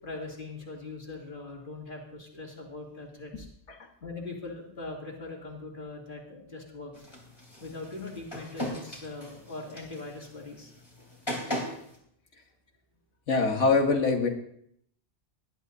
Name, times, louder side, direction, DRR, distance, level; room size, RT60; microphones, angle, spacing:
voice 1, 0.0-3.5 4.0-7.0 7.6-10.7 11.0-11.1, left 3 dB, 45° left, -2 dB, 3.0 m, -41 dB
sound 1, 6.9-12.0, equal, 20° left, 3.5 m, -39 dB
voice 2, 13.3-14.3, left 4 dB, 85° left, 4 dB, 1.7 m, -23 dB
19.5 x 12.0 x 2.7 m, 0.70 s
omnidirectional pair, 1.2 m